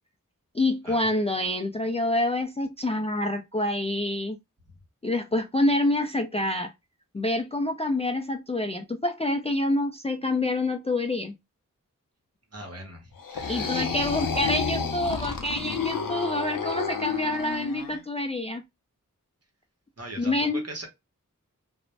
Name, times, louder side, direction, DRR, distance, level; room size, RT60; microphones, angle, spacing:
voice 1, 0.5-4.4 5.0-6.7 7.1-11.3 13.5-18.6 20.2-20.6, left 1 dB, 20° left, 0.3 m, -27 dB
voice 2, 12.5-13.8 20.0-20.9, right 1 dB, 50° right, 1.0 m, -40 dB
sound 1, 13.2-18.0, left 5 dB, 80° left, 0.6 m, -30 dB
2.5 x 2.0 x 3.1 m
wide cardioid pair, 40°, 33 cm